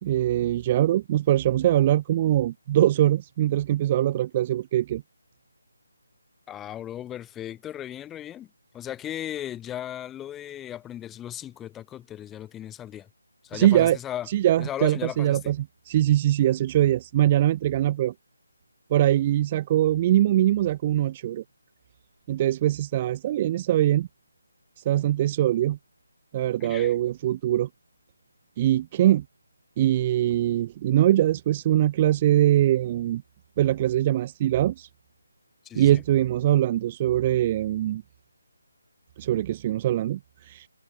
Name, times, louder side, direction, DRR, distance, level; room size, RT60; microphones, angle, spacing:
voice 1, 0.0-5.0 13.5-14.0 14.3-15.6 15.8-18.1 18.9-21.4 22.3-24.1 24.8-25.8 26.3-27.7 28.6-29.2 29.8-33.2 33.6-34.9 35.7-38.0 39.2-40.7, right 13 dB, 20° right, 1.3 m, -22 dB
voice 2, 6.5-8.5 8.7-13.1 13.4-14.3 14.6-15.4 26.6-26.9 35.6-36.0, left 11 dB, 10° left, 3.3 m, -36 dB
figure-of-eight pair, 170°, 0 cm